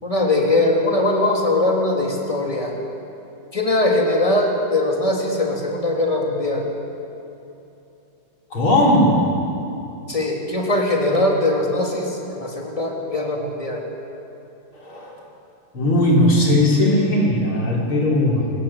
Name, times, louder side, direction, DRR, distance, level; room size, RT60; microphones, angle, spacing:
voice 1, 0.0-2.7 3.5-6.6 10.1-13.8, left 2 dB, 15° left, -1 dB, 3.4 m, -21 dB
voice 2, 8.5-9.4 14.7-15.2 15.7-18.5, left 1 dB, 90° left, -3 dB, 5.5 m, -18 dB
28.0 x 19.0 x 7.8 m, 2.8 s
omnidirectional pair, 2.2 m